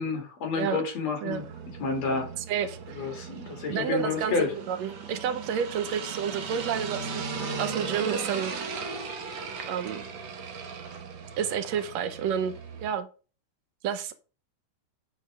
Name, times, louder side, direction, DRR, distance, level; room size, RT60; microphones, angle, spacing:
voice 1, 0.0-1.4 1.8-2.3 2.9-4.5, left 4 dB, 60° left, 4 dB, 3.1 m, -29 dB
sound 1, 1.3-12.9, right 5 dB, 55° right, 1.5 m, -37 dB
voice 2, 2.5-3.1 3.7-4.4 4.7-7.2 7.6-8.5 9.7-10.1 11.4-12.5 12.8-13.1 13.8-14.1, right 8 dB, 70° right, 10 dB, 2.0 m, -30 dB
9.4 x 4.4 x 4.8 m, 0.35 s
omnidirectional pair, 3.5 m